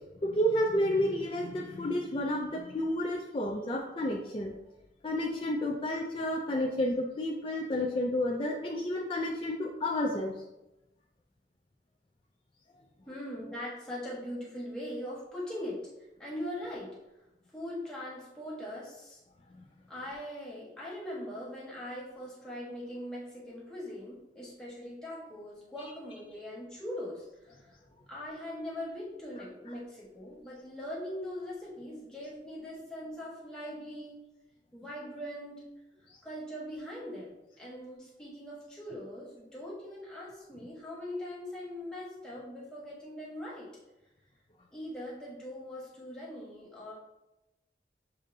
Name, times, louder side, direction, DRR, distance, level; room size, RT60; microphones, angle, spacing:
voice 1, 0.2-4.5 5.0-10.3, left 1 dB, 30° left, -2 dB, 0.3 m, -30 dB
voice 2, 13.1-15.8 16.2-17.0 17.5-19.2 19.9-27.8 28.1-34.2 34.7-35.7 36.2-43.7 44.7-46.9, left 1 dB, 5° left, -7 dB, 1.2 m, -41 dB
6.8 x 2.6 x 2.6 m, 0.97 s
head